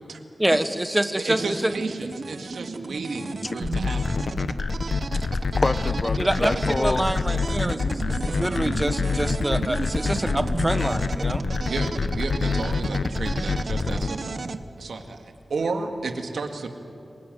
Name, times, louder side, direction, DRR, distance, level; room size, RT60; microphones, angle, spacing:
voice 1, 0.4-1.7 6.2-11.4, right 1 dB, 15° right, 10 dB, 1.3 m, -26 dB
voice 2, 1.2-4.2 6.4-6.6 11.6-14.4 14.8-16.7, right 3 dB, 85° right, 5 dB, 2.0 m, -32 dB
sound 1, 1.4-14.6, right 4 dB, 60° right, 1.0 m, -34 dB
sound 2, 3.6-14.1, left 4 dB, 70° left, 1.0 m, -26 dB
voice 3, 5.1-7.1, left 2 dB, 35° left, 13 dB, 0.9 m, -27 dB
27.0 x 19.0 x 9.2 m, 2.6 s
wide cardioid pair, 75°, 0 cm